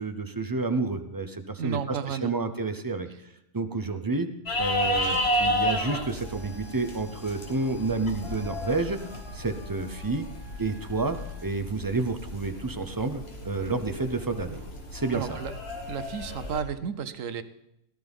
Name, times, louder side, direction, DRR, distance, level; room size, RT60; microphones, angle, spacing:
voice 1, 0.0-3.1 3.5-4.3 4.6-9.0 9.3-10.3 10.6-14.6 14.9-15.4, right 3 dB, 25° right, 8 dB, 0.5 m, -30 dB
voice 2, 1.6-2.3 15.1-15.5 15.9-17.4, right 7 dB, 70° right, 13 dB, 1.1 m, -32 dB
sound 1, 4.5-16.6, left 1 dB, 50° left, 1.7 m, -32 dB
sound 2, 6.2-11.5, left 1 dB, 50° right, 3.5 m, -52 dB
17.5 x 12.0 x 3.5 m, 0.82 s
omnidirectional pair, 1.4 m